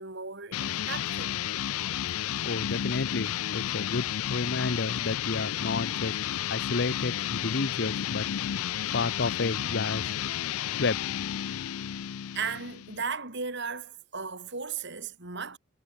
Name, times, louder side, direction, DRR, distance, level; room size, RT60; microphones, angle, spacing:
voice 1, 0.0-1.4 12.3-15.6, right 5 dB, 50° right, 3.9 m, -36 dB
sound 1, 0.5-13.0, left 10 dB, 75° left, 0.4 m, -32 dB
voice 2, 2.4-8.3 8.9-10.1 10.8-11.0, left 3 dB, 50° left, 0.8 m, -31 dB
head